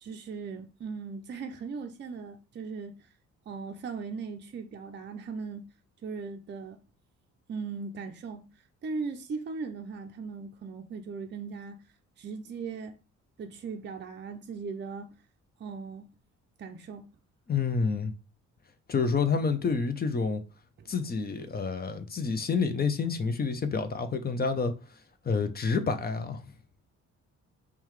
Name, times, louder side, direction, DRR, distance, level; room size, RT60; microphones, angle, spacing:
voice 1, 0.0-3.1 3.5-5.7 6.0-6.8 7.5-8.4 8.8-11.8 12.2-13.0 13.4-15.1 15.6-16.1 16.6-17.0 20.8-20.9, right 5 dB, 35° right, 0.5 m, -38 dB
voice 2, 17.5-18.1 18.9-20.4 20.9-24.7 25.2-26.4, left 5 dB, 30° left, 0.7 m, -28 dB
5.4 x 2.4 x 3.1 m
cardioid pair, 90°, 30 cm